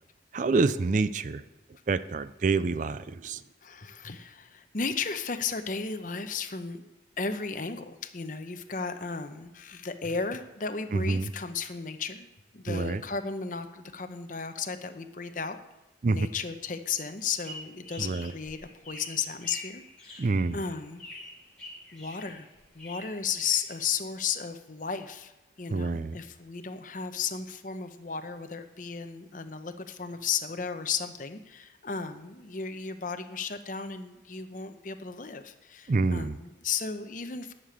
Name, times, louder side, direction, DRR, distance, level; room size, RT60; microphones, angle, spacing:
voice 1, 0.3-1.4 1.9-3.4 10.9-11.3 12.7-13.0 16.0-16.3 18.0-18.3 20.2-20.6 25.7-26.2 35.9-36.4, right 3 dB, 40° right, 15 dB, 0.4 m, -27 dB
voice 2, 3.6-12.3 12.5-15.6 16.0-21.0 21.9-22.5 22.7-25.3 25.6-37.5, left 5 dB, 45° left, 8 dB, 0.8 m, -34 dB
sound 1, 17.2-24.2, left 2 dB, 5° left, 3.1 m, -46 dB
11.0 x 6.7 x 8.5 m, 1.1 s
head